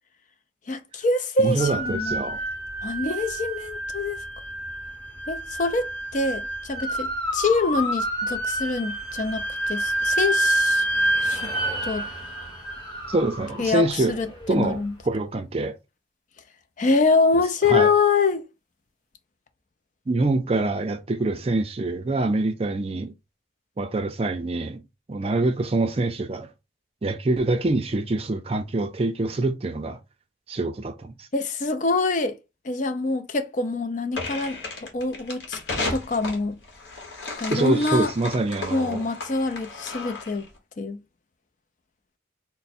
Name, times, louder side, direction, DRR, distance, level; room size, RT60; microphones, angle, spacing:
voice 1, 0.7-2.2 2.8-4.2 5.3-7.1 7.3-10.8 11.2-11.5 11.8-12.1 13.6-14.9 16.8-18.5 31.3-32.4 32.6-34.6 34.9-35.6 35.9-36.6 37.4-38.1 38.7-40.5 40.8-41.0, left 3 dB, 40° left, 0.4 m, -25 dB
voice 2, 1.4-2.4 13.1-14.2 14.5-15.8 17.6-17.9 20.1-23.1 23.8-24.8 25.1-26.5 27.0-30.0 30.5-31.3 37.5-39.0, right 2 dB, 30° right, 0.4 m, -25 dB
sound 1, 1.6-14.7, right 1 dB, 25° left, 1.3 m, -28 dB
sound 2, 34.1-40.5, left 3 dB, 65° left, 1.2 m, -34 dB
3.3 x 2.1 x 4.2 m
head